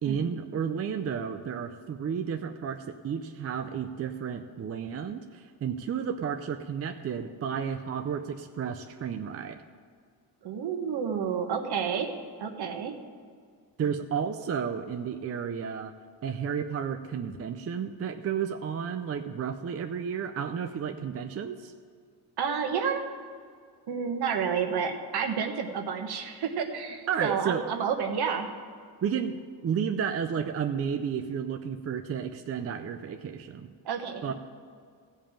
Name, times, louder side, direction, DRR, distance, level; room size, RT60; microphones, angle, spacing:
voice 1, 0.0-9.6 13.8-15.9 16.2-21.7 27.1-27.6 29.0-29.4 29.6-33.7 34.2-34.3, right 7 dB, 35° right, 6 dB, 0.5 m, -32 dB
voice 2, 10.4-12.1 12.4-12.9 22.4-23.0 23.9-28.5 33.8-34.3, right 6 dB, 65° right, 5 dB, 1.4 m, -30 dB
16.0 x 5.4 x 8.7 m, 2.1 s
wide cardioid pair, 170°, 42 cm